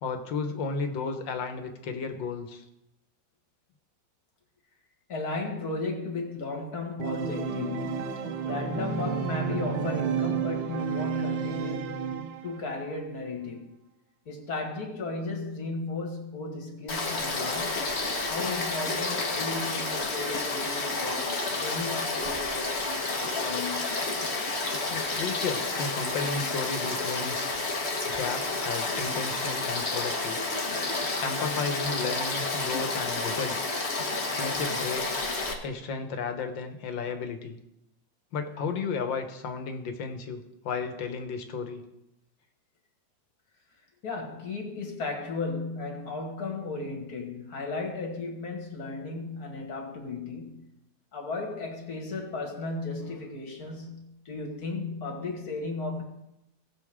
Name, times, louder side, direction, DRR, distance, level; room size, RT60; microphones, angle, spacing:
voice 1, 0.0-2.6 24.9-27.5 28.1-30.4 31.2-33.7 34.4-35.2 35.6-37.6 38.3-41.8, left 5 dB, 85° left, 1.9 m, -33 dB
voice 2, 5.1-12.1 12.4-13.7 14.3-17.9 18.3-24.0 44.0-50.7 51.1-56.0, left 3 dB, 55° left, 2.3 m, -35 dB
Organ, 7.0-12.7, right 7 dB, 80° right, 1.5 m, -31 dB
Frog / Stream, 16.9-35.5, left 3 dB, 40° left, 1.6 m, -30 dB
18.5 x 6.9 x 3.7 m
omnidirectional pair, 2.0 m